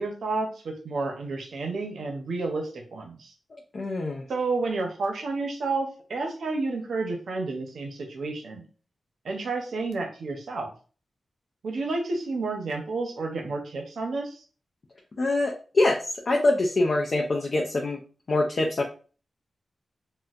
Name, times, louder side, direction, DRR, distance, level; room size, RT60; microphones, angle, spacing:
voice 1, 0.0-3.3 4.3-8.6 9.2-10.7 11.6-14.4, right 3 dB, 85° right, 2 dB, 0.7 m, -30 dB
voice 2, 3.5-4.2 15.2-18.0 18.3-18.8, left 2 dB, 50° left, 0 dB, 0.5 m, -24 dB
4.1 x 2.2 x 2.4 m, 0.38 s
wide cardioid pair, 135°, 0 cm